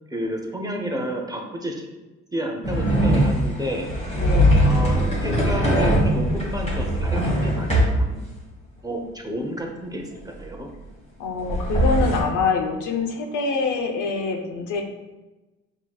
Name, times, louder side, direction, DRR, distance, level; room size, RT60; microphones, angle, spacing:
voice 1, 0.1-1.9 2.3-3.9 4.7-8.2 8.8-9.0 9.2-10.0 10.4-10.7, equal, 10° right, 1 dB, 0.7 m, -30 dB
sound 1, 2.6-8.0 11.4-12.2, equal, 20° left, 1.4 m, -20 dB
voice 2, 4.1-4.7 11.2-14.8, left 4 dB, 80° left, 2 dB, 0.7 m, -25 dB
5.5 x 3.0 x 2.3 m, 1.1 s
cardioid pair, 90°, 30 cm